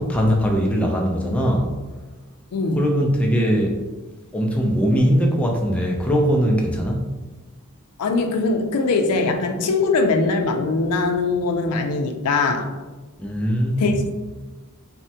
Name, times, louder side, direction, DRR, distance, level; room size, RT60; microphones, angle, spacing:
voice 1, 0.0-1.8 2.7-3.8 4.3-7.1 13.2-14.0, equal, 5° left, -1 dB, 0.3 m, -20 dB
voice 2, 8.0-12.7 13.8-14.1, left 3 dB, 85° left, 5 dB, 0.4 m, -21 dB
3.3 x 2.1 x 2.7 m, 1.2 s
head